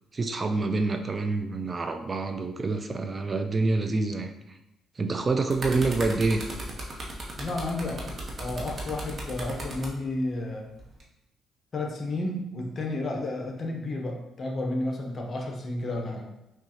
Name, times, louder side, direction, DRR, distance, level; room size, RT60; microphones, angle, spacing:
voice 1, 0.1-4.6 5.0-6.4, right 3 dB, 35° right, 7 dB, 0.4 m, -27 dB
sound 1, 5.2-9.9 10.8-11.0, right 2 dB, 50° right, 1.0 m, -36 dB
voice 2, 7.4-8.1 8.4-10.7 11.7-16.3, left 2 dB, 45° left, 2 dB, 0.8 m, -32 dB
5.5 x 2.4 x 2.8 m, 0.89 s
cardioid pair, 90°, 0 cm